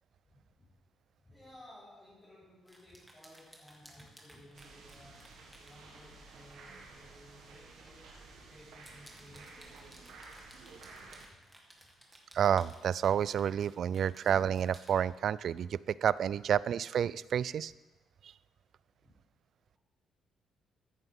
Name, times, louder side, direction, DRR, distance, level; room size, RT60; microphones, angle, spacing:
voice 1, 0.3-0.7 1.2-8.1 8.5-10.0 11.3-11.4 16.4-16.5 19.0-19.1, left 1 dB, 20° left, -9 dB, 3.9 m, -57 dB
sound 1, 2.7-5.9 6.7-6.9 7.3-7.4 8.7-15.0, right 1 dB, 5° right, 2.2 m, -58 dB
sound 2, 4.5-11.3, right 3 dB, 80° right, 2.0 m, -53 dB
voice 2, 12.3-17.7, right 9 dB, 65° right, 20 dB, 0.3 m, -30 dB
14.5 x 9.7 x 3.7 m, 1.1 s
cardioid pair, 90°, 0 cm